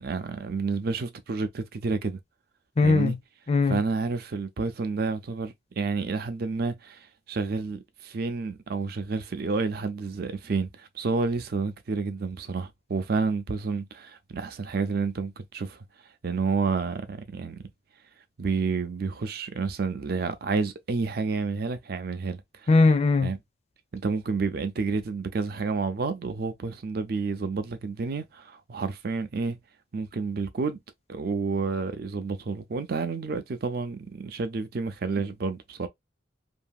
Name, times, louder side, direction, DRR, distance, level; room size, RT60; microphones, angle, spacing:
voice 1, 0.0-2.2 2.8-3.2 3.7-15.8 16.2-17.6 18.4-22.7 23.2-23.4 23.9-29.6 29.9-30.8 31.1-35.9, right 4 dB, 55° right, 0.5 m, -30 dB
voice 2, 2.8-3.2 3.5-3.8 22.7-23.3, left 3 dB, 35° left, 0.5 m, -20 dB
2.7 x 2.6 x 2.3 m
head